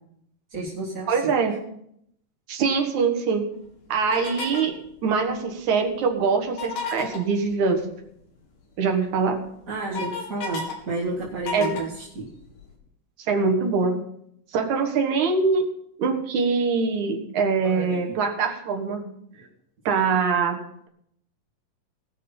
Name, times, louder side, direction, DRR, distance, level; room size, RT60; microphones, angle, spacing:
voice 1, 0.5-1.3 9.7-12.3 17.6-18.0, right 2 dB, 30° right, -5 dB, 1.7 m, -31 dB
voice 2, 1.1-1.6 2.5-3.4 3.9-4.8 5.0-7.9 8.8-9.5 11.5-11.9 13.3-14.0 14.5-15.6 16.0-19.1 19.9-20.6, right 5 dB, 65° right, 3 dB, 2.6 m, -23 dB
sound 1, 4.1-4.7 6.5-7.2 8.8-8.9 9.3-10.7 11.1-12.7, left 4 dB, 70° left, 3.8 m, -32 dB
19.0 x 6.6 x 5.5 m, 0.74 s
omnidirectional pair, 4.0 m